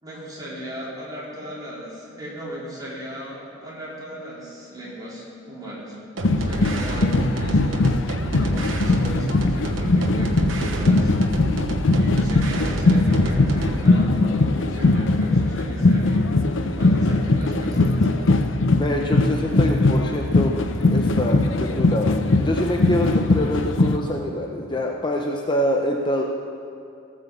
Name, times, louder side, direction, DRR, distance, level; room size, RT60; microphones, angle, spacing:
voice 1, 0.0-11.1 11.9-16.3 16.6-18.4, equal, 20° right, -7 dB, 3.7 m, -37 dB
sound 1, 6.2-24.0, left 2 dB, 75° left, 0.7 m, -20 dB
sound 2, 6.2-13.9, right 1 dB, 85° right, 1.0 m, -28 dB
voice 2, 18.8-20.5 20.9-22.2 22.4-26.2, left 1 dB, 25° left, 1 dB, 0.7 m, -25 dB
17.5 x 6.3 x 7.2 m, 2.6 s
head